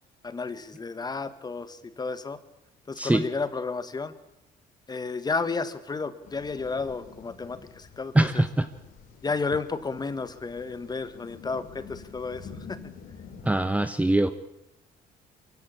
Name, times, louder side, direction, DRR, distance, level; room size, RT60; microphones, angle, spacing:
voice 1, 0.2-2.4 2.9-4.1 4.9-8.4 9.2-12.8, left 4 dB, 25° left, 12 dB, 1.7 m, -32 dB
sound 1, 6.2-13.5, left 6 dB, 55° left, 4.2 m, -48 dB
voice 2, 8.1-8.7 13.4-14.3, right 1 dB, 10° right, 10 dB, 1.0 m, -22 dB
23.5 x 16.0 x 8.6 m, 0.86 s
cardioid pair, 110°, 17 cm